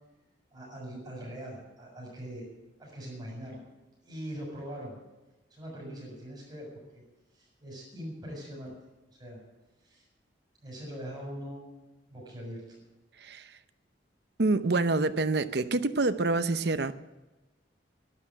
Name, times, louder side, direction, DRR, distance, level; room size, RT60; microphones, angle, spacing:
voice 1, 0.5-2.5 2.8-3.6 4.0-5.0 5.5-6.7 6.9-7.0 7.3-8.7 9.2-9.4 9.8-10.0 10.6-11.6 12.1-12.8, equal, 25° right, 7.0 m, -42 dB
voice 2, 14.4-16.9, right 3 dB, 65° right, 0.8 m, -26 dB
12.0 x 11.5 x 8.9 m
head